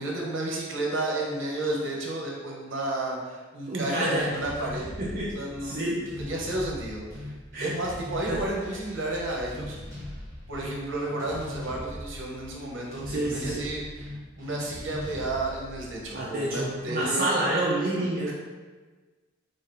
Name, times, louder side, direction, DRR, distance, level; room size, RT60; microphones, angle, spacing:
voice 1, 0.0-4.8 5.3-7.3 7.6-9.8 10.5-17.2 17.9-18.3, right 2 dB, 70° right, -2 dB, 0.9 m, -32 dB
voice 2, 3.7-4.3 5.0-6.1 7.5-7.7 8.3-8.4 13.1-13.7 16.1-18.3, right 1 dB, 50° right, -6 dB, 0.6 m, -28 dB
sound 1, 4.1-16.9, left 1 dB, 15° right, 1.2 m, -40 dB
3.7 x 2.7 x 3.8 m, 1.4 s
head